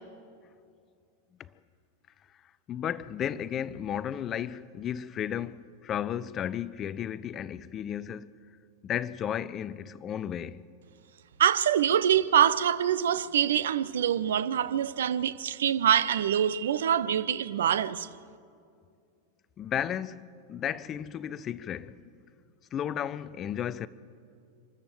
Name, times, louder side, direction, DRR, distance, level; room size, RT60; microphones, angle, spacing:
voice 1, 2.7-8.3 8.8-10.6 19.6-22.1 22.7-23.9, left 9 dB, 30° left, 0.5 m, -34 dB
voice 2, 11.4-18.1, right 9 dB, 60° right, 0.6 m, -25 dB
25.5 x 13.5 x 7.8 m
figure-of-eight pair, 90°, 0 cm